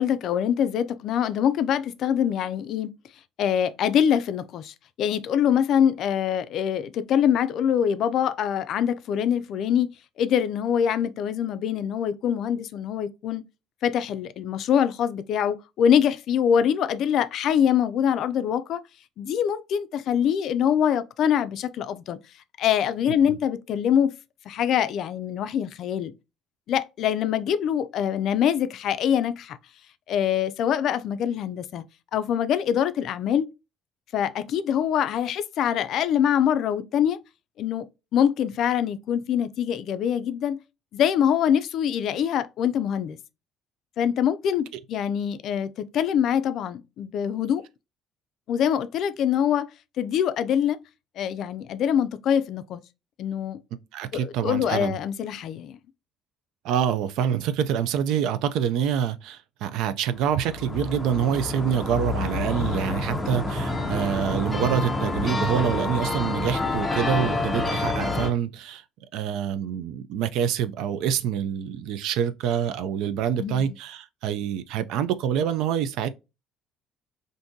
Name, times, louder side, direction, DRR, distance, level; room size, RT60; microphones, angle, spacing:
voice 1, 0.0-2.9 3.4-9.9 10.2-13.4 13.8-18.8 19.2-22.2 22.6-24.1 24.5-26.1 26.7-29.6 30.1-31.8 32.1-33.5 34.1-37.2 37.6-37.8 38.1-40.6 40.9-43.2 44.0-47.6 48.5-49.7 50.0-50.8 51.2-52.8 53.2-53.6 54.1-55.8 73.4-73.7, left 9 dB, 55° left, 0.3 m, -24 dB
voice 2, 53.9-54.9 56.6-68.8 69.1-76.1, right 9 dB, 75° right, 0.4 m, -26 dB
sound 1, 60.2-68.3, left 2 dB, 5° left, 0.5 m, -28 dB
3.6 x 2.6 x 2.6 m
cardioid pair, 145°, 0 cm